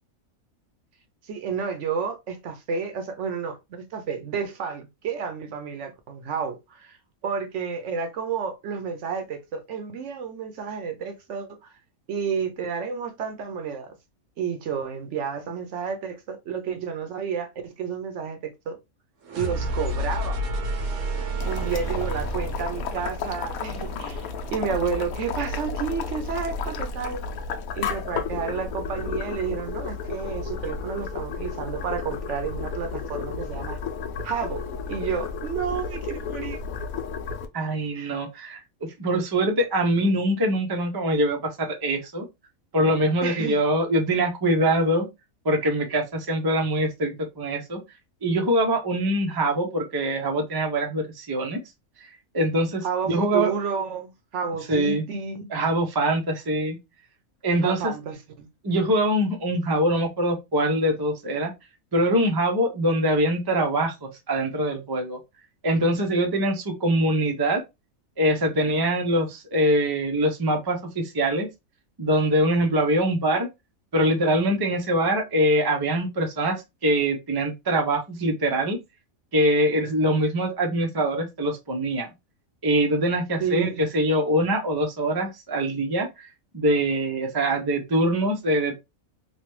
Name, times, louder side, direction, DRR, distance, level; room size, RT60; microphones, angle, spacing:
voice 1, 1.2-7.0 7.2-11.7 12.1-13.9 14.4-18.8 19.4-20.4 21.0-21.1 21.4-27.2 27.8-33.8 34.2-36.6 37.9-38.2 43.2-43.6 52.8-55.5 57.6-58.5 83.4-83.9, right 6 dB, 65° right, 0.9 m, -31 dB
sound 1, 19.2-25.1, right 1 dB, 90° right, 1.3 m, -31 dB
Boiling, 21.4-37.5, left 5 dB, 85° left, 1.0 m, -32 dB
voice 2, 37.5-42.3 42.7-45.1 45.4-47.8 48.2-51.6 52.3-53.5 54.7-55.0 55.5-56.8 57.4-57.9 58.6-61.5 61.9-65.2 65.6-67.6 68.2-71.5 72.0-73.5 73.9-78.8 79.3-82.1 82.6-86.3 86.5-88.8, right 1 dB, 30° right, 0.4 m, -23 dB
3.2 x 2.2 x 3.0 m
omnidirectional pair, 1.5 m